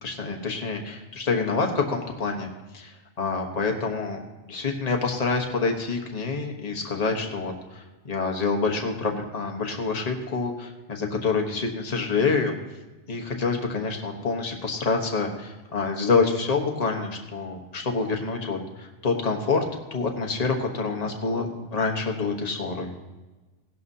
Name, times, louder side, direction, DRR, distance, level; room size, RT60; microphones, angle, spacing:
voice 1, 0.0-2.5 2.7-4.2 4.5-12.6 13.1-19.6 19.9-22.9, left 4 dB, 35° left, 2 dB, 1.3 m, -27 dB
17.0 x 11.5 x 2.8 m, 1.2 s
omnidirectional pair, 1.2 m